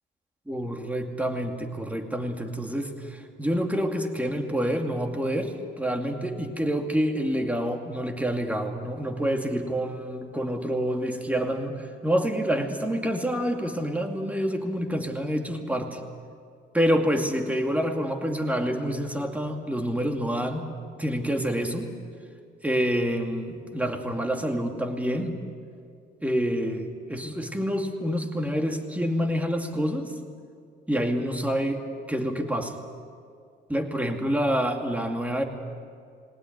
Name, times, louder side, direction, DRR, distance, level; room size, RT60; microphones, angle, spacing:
voice 1, 0.5-16.0 16.7-20.7 21.0-21.9 22.6-25.4 26.2-30.1 30.9-32.7 33.7-35.4, equal, 5° right, 4 dB, 2.4 m, -27 dB
20.0 x 19.0 x 9.3 m, 2.3 s
cardioid pair, 90°, 20 cm